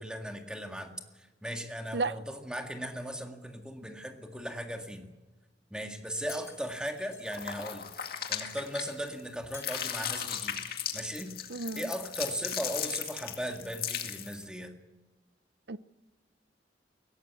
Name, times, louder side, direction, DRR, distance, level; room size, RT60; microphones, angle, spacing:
voice 1, 0.0-5.1 5.7-10.6 10.9-11.3 11.7-14.7, equal, 5° right, 1.9 m, -38 dB
Shatter, 6.3-7.3 9.5-10.6, left 5 dB, 15° left, 2.2 m, -50 dB
sound 1, 7.3-9.2 9.5-14.4, left 9 dB, 55° left, 2.1 m, -37 dB
voice 2, 11.5-11.8 15.7-15.8, right 3 dB, 65° right, 0.7 m, -32 dB
21.5 x 18.0 x 8.3 m
head